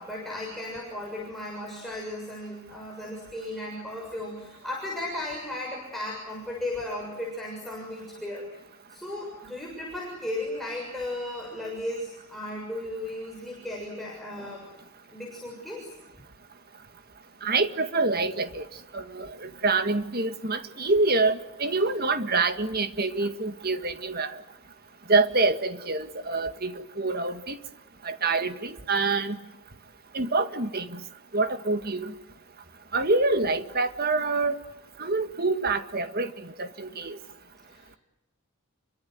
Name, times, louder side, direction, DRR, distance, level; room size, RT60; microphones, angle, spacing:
voice 1, 0.0-8.6 8.9-14.7 15.1-15.9 37.6-37.9, left 1 dB, ahead, -4 dB, 7.0 m, -35 dB
voice 2, 17.4-18.6 18.9-24.4 25.1-27.6 28.0-29.4 30.1-31.0 31.3-32.1 32.9-34.6 35.0-37.2, right 3 dB, 45° right, 9 dB, 1.9 m, -26 dB
30.0 x 24.0 x 7.9 m, 0.97 s
head